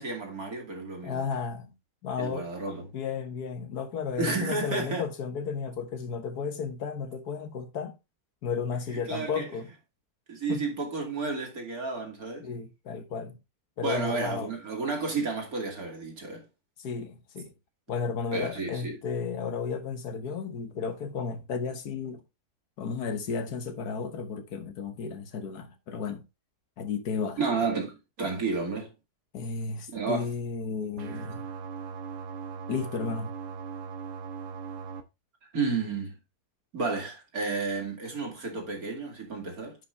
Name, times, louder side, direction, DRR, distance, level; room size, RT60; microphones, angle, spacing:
voice 1, 0.0-1.2 2.2-2.8 4.2-5.0 9.1-9.5 10.3-12.5 13.8-16.4 18.3-19.0 27.4-28.9 29.9-30.3 35.5-36.1 36.7-39.8, right 4 dB, 60° right, 3.0 m, -31 dB
voice 2, 1.0-1.7 2.0-2.5 2.9-8.0 8.4-9.7 10.5-10.7 12.4-13.4 13.8-14.5 16.8-17.5 17.9-22.2 22.8-26.3 26.8-27.4 29.3-31.5 32.7-33.4, left 5 dB, 70° left, 1.6 m, -33 dB
sound 1, 31.0-35.0, right 6 dB, 80° right, 1.7 m, -39 dB
9.6 x 5.6 x 3.3 m
omnidirectional pair, 1.7 m